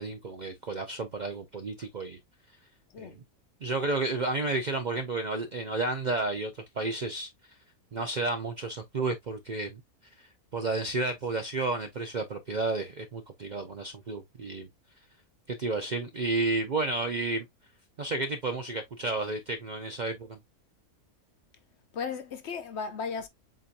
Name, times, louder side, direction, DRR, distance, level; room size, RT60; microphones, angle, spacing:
voice 1, 0.0-2.2 3.0-3.2 3.6-7.3 7.9-9.8 10.2-14.7 15.5-17.5 18.0-20.4, right 3 dB, 55° right, 0.5 m, -31 dB
voice 2, 21.9-23.3, left 5 dB, 60° left, 0.8 m, -35 dB
7.5 x 2.8 x 2.4 m
omnidirectional pair, 1.5 m